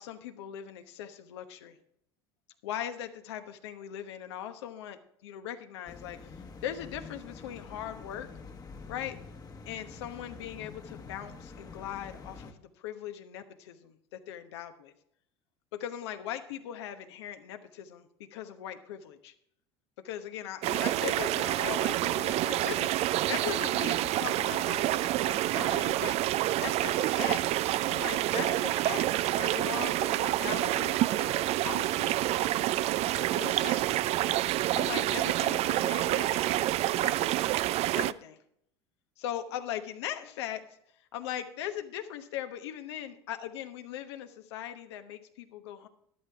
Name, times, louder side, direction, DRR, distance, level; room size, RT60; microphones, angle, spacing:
voice 1, 0.0-1.8 2.6-6.3 6.6-8.3 8.9-9.2 9.7-14.9 15.7-19.3 20.0-26.2 26.6-27.6 27.9-32.8 33.1-33.9 34.5-37.5 37.9-38.4 39.2-40.7 41.1-45.9, left 11 dB, 75° left, 8 dB, 1.0 m, -40 dB
sound 1, 5.9-12.5, left 4 dB, 25° left, 1.3 m, -47 dB
sound 2, 20.6-38.1, right 15 dB, 50° right, 0.4 m, -28 dB
13.0 x 11.0 x 3.5 m, 0.72 s
hypercardioid pair, 80°, 14 cm